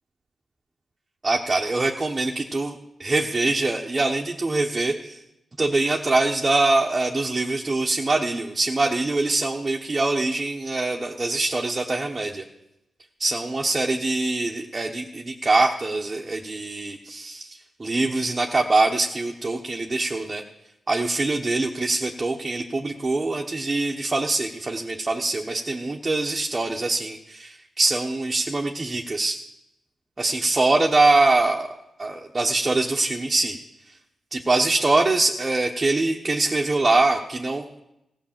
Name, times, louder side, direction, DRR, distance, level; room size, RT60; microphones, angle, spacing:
voice 1, 1.2-5.2 5.6-12.4 13.2-20.4 20.9-29.4 30.2-31.7 32.0-33.6 34.3-37.6, right 2 dB, 35° right, 0 dB, 1.1 m, -23 dB
15.5 x 5.5 x 7.4 m, 0.87 s
supercardioid pair, 40°, 0 cm